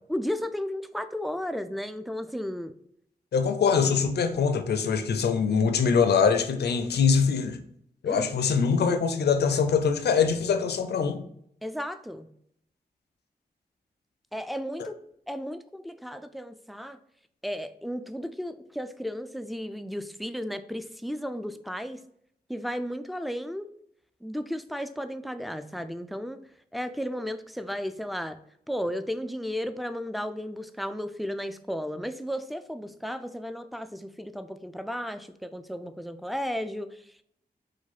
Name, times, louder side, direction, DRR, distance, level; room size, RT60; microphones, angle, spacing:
voice 1, 0.1-2.7 8.0-8.3 11.6-12.3 14.3-15.0 15.3-17.0 17.4-22.0 22.5-23.7 24.2-26.4 26.7-28.4 28.7-37.2, equal, ahead, 0.3 m, -34 dB
voice 2, 3.3-7.6 8.0-11.2 14.8-14.9, left 6 dB, 85° left, 0.4 m, -23 dB
4.7 x 2.2 x 4.1 m
cardioid pair, 65°, 17 cm